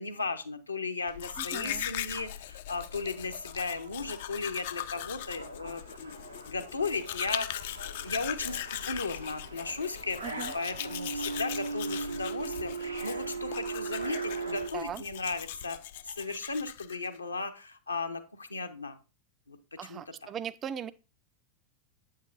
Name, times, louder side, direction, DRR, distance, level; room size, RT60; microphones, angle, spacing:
voice 1, 0.0-15.8 16.0-19.0 19.5-20.0, left 3 dB, 80° left, 0.7 m, -36 dB
Domestic sounds home sounds, 1.1-17.2, left 12 dB, 55° left, 0.3 m, -40 dB
voice 2, 1.4-1.9 10.2-10.5 14.7-15.0 19.8-20.9, right 8 dB, 25° right, 0.4 m, -39 dB
sound 1, 3.2-14.7, right 4 dB, 85° right, 0.7 m, -39 dB
7.9 x 6.5 x 2.4 m
figure-of-eight pair, 90°, 0 cm